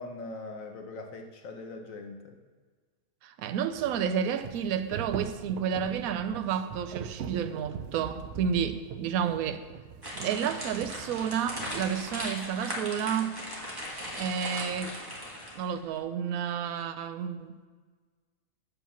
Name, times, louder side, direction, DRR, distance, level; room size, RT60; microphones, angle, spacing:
voice 1, 0.0-2.4 8.5-8.6, left 3 dB, 65° left, 1.1 m, -41 dB
voice 2, 3.2-9.6 10.2-13.4 14.2-15.0 15.6-17.6, right 8 dB, 70° right, 1.0 m, -31 dB
sound 1, 3.7-11.9, right 7 dB, 90° right, 0.5 m, -42 dB
sound 2, 10.0-15.7, equal, 15° right, 1.6 m, -38 dB
7.4 x 5.5 x 7.0 m
omnidirectional pair, 1.7 m